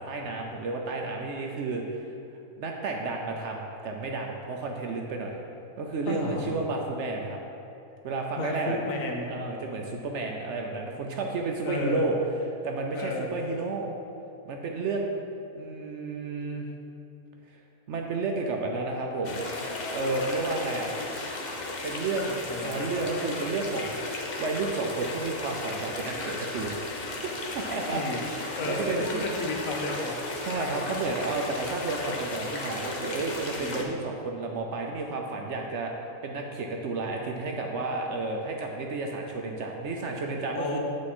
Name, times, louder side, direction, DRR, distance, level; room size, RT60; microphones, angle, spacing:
voice 1, 0.1-2.0 2.6-5.4 5.8-7.4 8.0-8.8 9.3-12.2 12.6-13.9 14.5-15.1 15.5-16.7 17.5-17.6 17.9-19.4 19.9-20.9 21.8-29.2 30.4-35.9 36.2-40.8, right 3 dB, 60° right, 1 dB, 0.8 m, -31 dB
voice 2, 6.1-6.6 8.4-9.3 11.6-12.1 12.9-13.3 22.5-22.9 27.8-28.2 28.6-30.2 33.6-33.9 40.5-40.8, left 2 dB, 65° left, 1 dB, 1.2 m, -32 dB
sound 1, 19.2-33.8, left 2 dB, 40° left, 0.7 m, -35 dB
8.2 x 4.9 x 4.3 m, 2.9 s
omnidirectional pair, 1.5 m